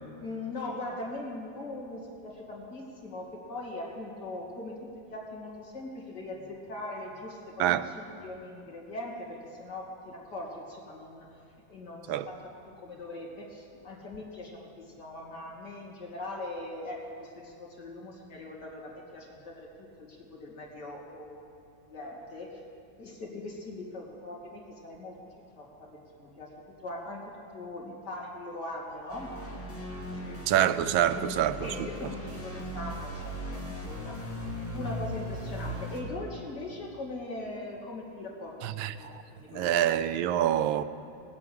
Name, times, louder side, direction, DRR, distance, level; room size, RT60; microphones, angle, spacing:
voice 1, 0.1-11.3 11.7-21.5 21.9-22.5 23.0-29.5 30.1-30.4 31.0-31.3 31.6-34.4 34.7-40.0, left 2 dB, 55° left, 3.0 m, -41 dB
sound 1, 29.1-36.0, equal, 5° left, 2.2 m, -38 dB
voice 2, 30.5-31.5 31.8-31.9 38.6-39.2 39.5-40.8, right 11 dB, 85° right, 1.4 m, -26 dB
19.5 x 8.3 x 8.7 m
omnidirectional pair, 2.2 m